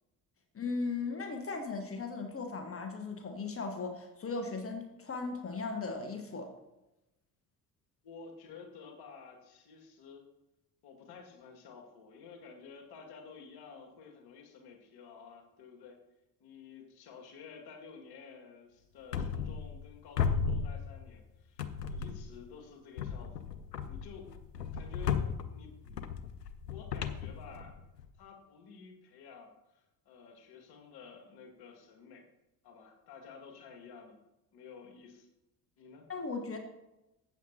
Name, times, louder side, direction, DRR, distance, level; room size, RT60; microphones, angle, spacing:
voice 1, 0.5-6.5 36.1-36.6, left 4 dB, 30° left, 5 dB, 1.4 m, -37 dB
voice 2, 8.0-10.3 10.8-16.0 16.4-24.3 24.7-26.3 26.7-27.8 28.2-32.3 32.6-34.2 34.5-35.3 35.8-36.1, left 5 dB, 50° left, 3 dB, 2.1 m, -52 dB
sound 1, 19.1-19.9 20.2-21.2 21.6-22.4 23.0-28.1, left 6 dB, 85° left, 0.6 m, -35 dB
14.0 x 8.4 x 2.9 m, 0.95 s
figure-of-eight pair, 55°, 47 cm